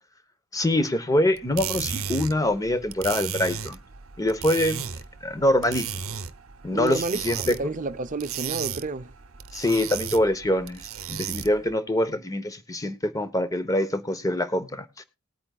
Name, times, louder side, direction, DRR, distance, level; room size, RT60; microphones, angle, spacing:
voice 1, 0.5-3.8 4.2-4.8 5.2-6.0 6.6-7.6 9.5-10.8 11.1-15.0, left 1 dB, 15° left, 1.0 m, -24 dB
sound 1, 1.4-11.7, right 8 dB, 75° right, 0.8 m, -35 dB
voice 2, 6.7-9.1, right 3 dB, 40° right, 0.6 m, -30 dB
19.5 x 8.7 x 2.4 m
head